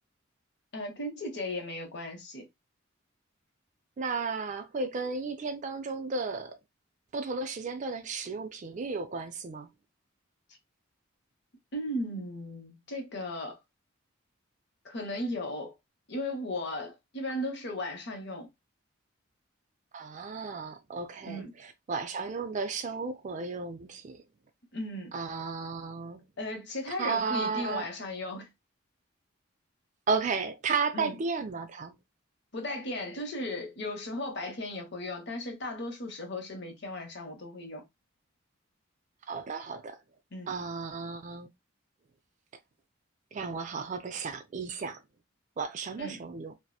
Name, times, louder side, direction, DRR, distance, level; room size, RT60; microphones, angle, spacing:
voice 1, 0.7-2.5 11.7-13.6 14.8-15.7 16.1-18.5 21.2-21.5 24.7-25.1 26.4-28.5 30.9-31.2 32.5-37.8 40.3-40.5 46.0-46.2, left 1 dB, 55° left, 0.7 m, -36 dB
voice 2, 4.0-6.6 7.1-9.7 19.9-24.2 25.1-26.2 27.0-27.9 30.1-31.9 39.3-40.0 40.5-41.5 43.3-45.0 45.6-46.5, right 4 dB, 35° right, 0.3 m, -34 dB
2.8 x 2.0 x 2.2 m
head